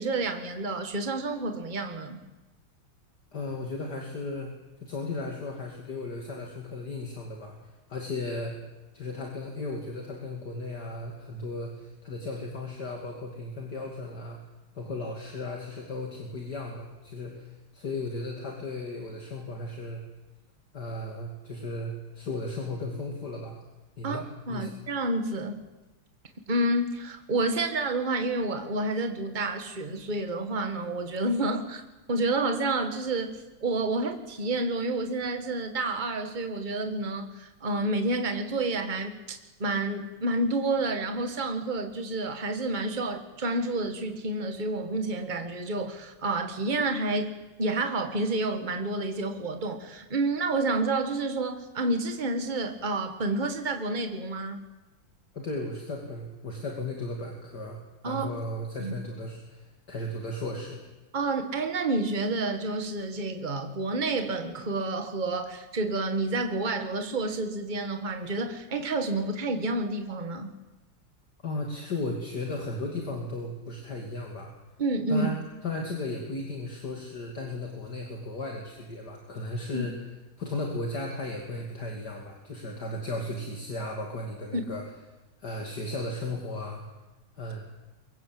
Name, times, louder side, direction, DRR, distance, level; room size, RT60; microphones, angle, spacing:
voice 1, 0.0-2.2 24.0-25.6 26.5-31.8 32.1-54.6 58.0-58.3 58.8-58.9 61.1-70.5 74.8-75.3 79.7-79.8 84.5-84.6, right 2 dB, 25° right, 6 dB, 1.8 m, -29 dB
voice 2, 3.3-4.5 4.8-8.6 8.9-14.4 14.7-20.0 20.7-23.5 24.0-24.7 55.3-57.8 58.0-60.8 71.4-74.5 75.1-75.4 75.6-80.0 80.4-84.8 85.4-86.8 87.3-87.6, left 2 dB, 50° left, 1 dB, 3.1 m, -35 dB
23.5 x 22.5 x 7.8 m, 1.1 s
omnidirectional pair, 2.3 m